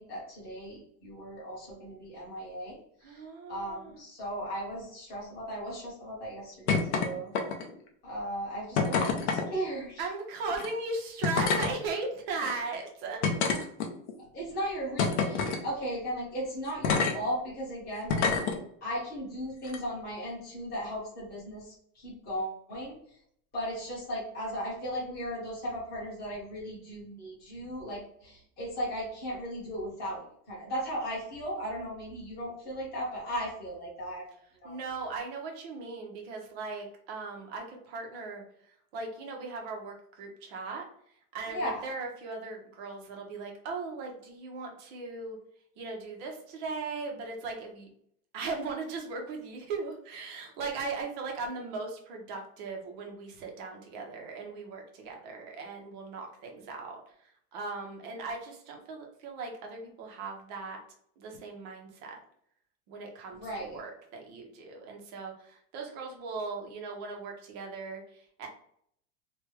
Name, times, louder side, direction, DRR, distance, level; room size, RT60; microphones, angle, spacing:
voice 1, 0.0-2.8 3.5-7.3 8.0-10.1 14.3-18.3 18.8-23.0 23.5-34.3 34.6-34.7 41.5-41.9 63.3-63.8, equal, 20° left, -7 dB, 1.3 m, -36 dB
voice 2, 3.0-4.0 10.0-13.3 34.6-38.4 38.9-40.9 41.3-45.4 45.8-47.9 48.3-60.8 61.2-62.2 62.9-68.5, right 3 dB, 30° right, 1 dB, 0.5 m, -38 dB
sound 1, 6.7-7.1 7.3-7.8 8.8-9.5 10.5-10.7 11.2-11.7 12.4-12.5 13.2-14.1 15.0-15.6 16.8-17.1 18.1-18.6 19.6-19.8, left 5 dB, 45° left, 0.6 m, -27 dB
3.3 x 2.2 x 3.2 m, 0.67 s
supercardioid pair, 165°, 46 cm